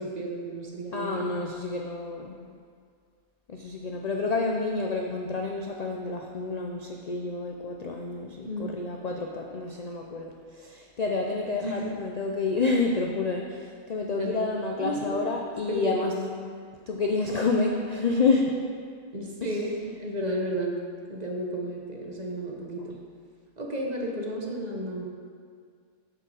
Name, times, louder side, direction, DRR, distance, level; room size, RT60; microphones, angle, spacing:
voice 1, 0.0-1.2 8.4-8.7 11.6-11.9 14.0-14.4 14.8-15.2 15.7-16.3 19.1-20.8 21.1-23.0 23.6-25.1, right 1 dB, 35° right, -1 dB, 0.9 m, -32 dB
voice 2, 0.9-2.4 3.5-16.1 16.9-18.6 19.4-19.6, left 3 dB, 70° left, 1 dB, 0.3 m, -29 dB
7.6 x 4.9 x 6.3 m, 2.1 s
omnidirectional pair, 1.4 m